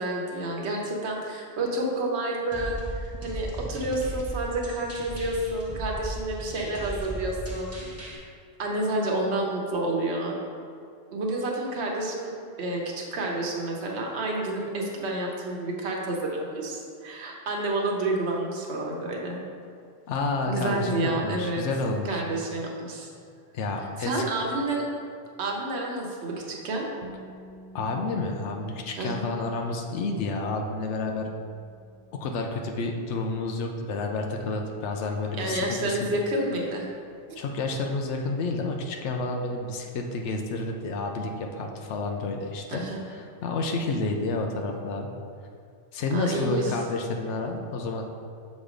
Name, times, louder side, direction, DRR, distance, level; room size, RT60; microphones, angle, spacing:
voice 1, 0.0-7.7 8.6-10.4 11.1-12.3 12.6-19.4 20.5-21.6 22.0-23.1 24.0-24.8 25.4-26.8 28.9-29.3 35.4-36.8 42.7-43.0 46.1-46.7, right 2 dB, 70° right, -1 dB, 1.2 m, -29 dB
sound 1, 2.5-8.2, right 1 dB, 15° right, 0.9 m, -36 dB
voice 2, 20.1-22.2 23.5-24.2 27.7-31.3 32.1-36.2 37.4-45.1 45.9-48.0, left 3 dB, 90° left, 2 dB, 0.9 m, -30 dB
sound 2, 37.0-38.9, right 2 dB, 55° right, 0.6 m, -53 dB
7.1 x 3.2 x 4.9 m, 2.4 s
omnidirectional pair, 1.1 m